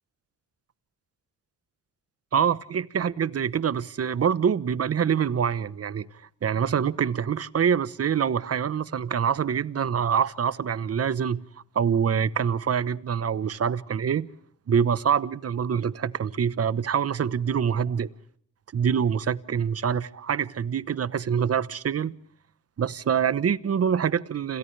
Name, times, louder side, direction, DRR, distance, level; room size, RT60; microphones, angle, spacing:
voice 1, 2.3-6.1 6.4-11.4 11.7-14.3 14.7-18.1 18.7-22.1 22.8-24.6, right 7 dB, 45° right, 1.1 m, -25 dB
29.5 x 27.0 x 3.4 m
cardioid pair, 75°, 34 cm